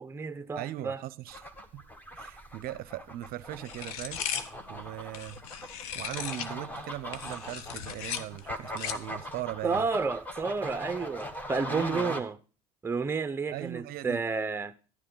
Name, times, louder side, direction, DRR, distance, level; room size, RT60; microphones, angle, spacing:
voice 1, 0.0-1.0 9.6-12.3 12.8-14.7, right 4 dB, 15° right, 0.6 m, -31 dB
voice 2, 0.6-1.8 2.2-4.3 4.7-5.4 5.9-9.9 11.7-12.2 13.5-14.2, right 14 dB, 55° right, 0.6 m, -39 dB
sound 1, 1.3-12.2, equal, 10° left, 1.2 m, -41 dB
sound 2, 3.7-6.6 7.0-9.2, left 9 dB, 80° left, 0.8 m, -37 dB
11.0 x 9.9 x 3.8 m
supercardioid pair, 95°, 18 cm